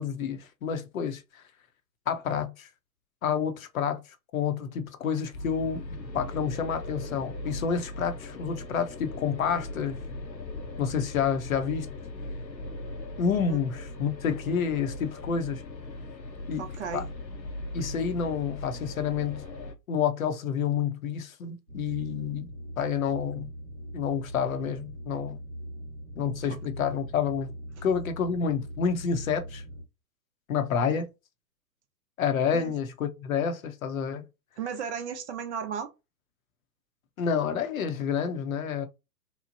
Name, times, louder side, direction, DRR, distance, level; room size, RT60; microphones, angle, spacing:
voice 1, 0.0-1.4 2.1-2.7 3.2-4.0 4.3-5.8 6.1-10.0 10.8-11.9 13.2-15.6 16.5-16.6 16.9-17.0 17.7-19.4 19.9-22.5 22.8-23.5 23.9-25.4 26.2-27.5 27.8-29.6 30.5-31.1 32.2-34.2 37.2-38.9, left 7 dB, 55° left, 0.6 m, -29 dB
sound 1, 5.3-19.7, left 2 dB, 85° left, 0.8 m, -39 dB
voice 2, 16.6-17.1 27.8-27.9 30.9-31.0 32.5-32.7 34.6-35.9, right 7 dB, 45° right, 0.6 m, -35 dB
sound 2, 21.7-29.8, equal, 10° left, 0.4 m, -41 dB
2.9 x 2.0 x 2.5 m
figure-of-eight pair, 110°, 50 cm